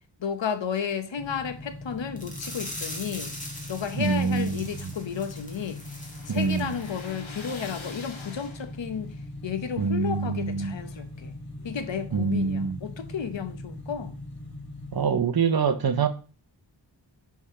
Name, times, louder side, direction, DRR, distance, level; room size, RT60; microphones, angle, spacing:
voice 1, 0.2-3.3 3.7-5.8 6.3-9.1 9.4-11.3 11.6-14.2, left 7 dB, 70° left, 0.9 m, -33 dB
sound 1, 1.2-15.1, left 1 dB, 45° left, 2.7 m, -41 dB
sound 2, 2.2-7.2 7.5-7.6 8.0-8.1, left 1 dB, 15° left, 1.6 m, -41 dB
sound 3, 3.5-9.0, left 4 dB, 85° left, 1.5 m, -46 dB
voice 2, 3.9-4.9 6.3-6.8 9.8-10.8 12.1-12.8 14.9-16.1, right 5 dB, 50° right, 0.7 m, -25 dB
6.5 x 3.5 x 4.2 m
wide cardioid pair, 100°, 46 cm